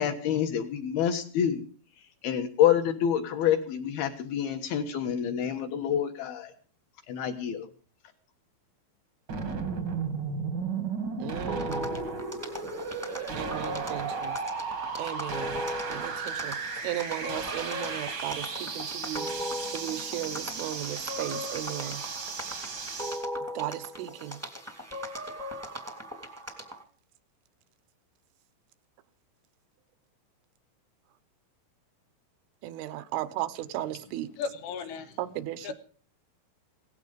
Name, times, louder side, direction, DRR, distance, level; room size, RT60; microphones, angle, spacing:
voice 1, 0.0-1.6 2.2-6.5 7.1-7.7, left 9 dB, 65° left, 2.7 m, -27 dB
sound 1, 9.3-23.2, right 5 dB, 45° right, 1.3 m, -35 dB
voice 2, 11.2-12.0 13.4-14.4 15.0-19.3 19.7-22.0 23.6-24.4 32.6-34.3 35.2-35.7, right 13 dB, 80° right, 3.4 m, -36 dB
sound 2, 11.5-26.8, equal, 5° right, 1.1 m, -38 dB
voice 3, 34.4-35.2 35.6-35.7, left 5 dB, 85° left, 4.2 m, -35 dB
17.5 x 15.0 x 5.2 m
omnidirectional pair, 5.6 m